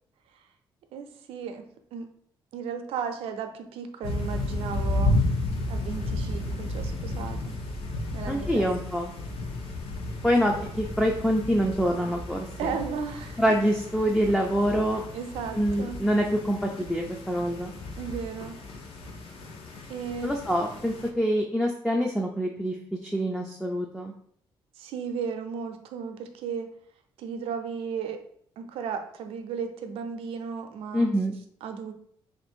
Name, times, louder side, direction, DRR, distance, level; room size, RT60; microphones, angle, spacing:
voice 1, 0.9-1.6 1.9-2.1 2.5-5.2 5.7-7.5 8.1-8.7 12.6-13.4 15.1-16.0 18.0-18.6 19.9-20.3 24.8-26.7 27.2-28.2 28.6-31.1 31.6-31.9, right 6 dB, 90° right, 6 dB, 0.5 m, -35 dB
sound 1, 4.0-21.1, left 2 dB, 75° left, 0.8 m, -33 dB
voice 2, 8.3-9.1 10.2-12.5 13.4-15.0 15.5-17.7 20.2-22.8 23.0-24.1 30.9-31.4, equal, 5° left, 0 dB, 0.3 m, -25 dB
3.1 x 2.5 x 4.4 m, 0.65 s
cardioid pair, 160°, 9 cm